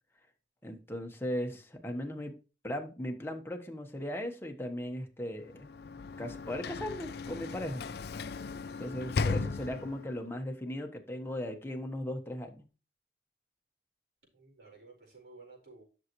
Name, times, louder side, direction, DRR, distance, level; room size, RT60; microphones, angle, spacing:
voice 1, 0.6-2.3 2.6-5.7 6.2-7.9 8.8-12.6, left 1 dB, 15° left, 1.2 m, -37 dB
Sliding door / Slam, 5.5-10.2, left 4 dB, 65° left, 0.4 m, -36 dB
voice 2, 8.9-9.7 14.3-15.8, right 3 dB, 65° right, 4.6 m, -55 dB
10.5 x 6.5 x 3.1 m
head